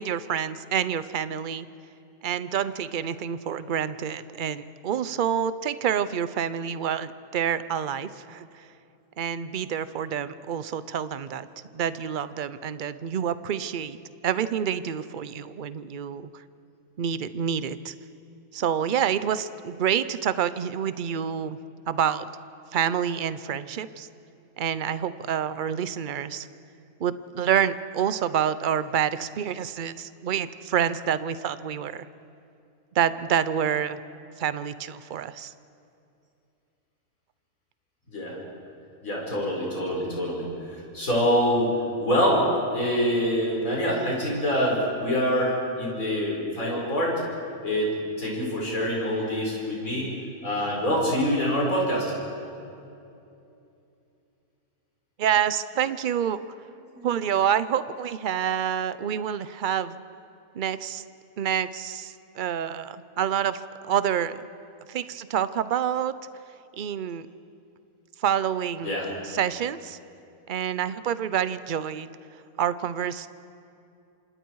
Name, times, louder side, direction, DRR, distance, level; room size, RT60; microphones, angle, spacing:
voice 1, 0.0-1.7 2.2-8.7 9.2-11.5 11.7-14.0 14.2-16.2 17.0-17.9 18.5-21.6 21.9-22.3 22.7-24.1 24.6-26.5 27.0-32.1 32.9-34.0 34.4-35.5 55.2-56.4 57.0-60.0 60.5-61.0 61.4-63.6 63.9-64.4 64.9-66.1 66.8-67.3 68.2-68.9 69.2-70.0 70.5-72.1 72.6-73.3, right 9 dB, 50° right, 14 dB, 0.6 m, -27 dB
voice 2, 39.0-40.5 40.7-41.7 42.0-47.2 47.6-47.9 48.2-50.2 50.4-52.1 56.9-57.2 68.8-69.1, equal, 65° left, -3 dB, 5.5 m, -25 dB
28.0 x 26.5 x 4.7 m, 2.7 s
omnidirectional pair, 1.6 m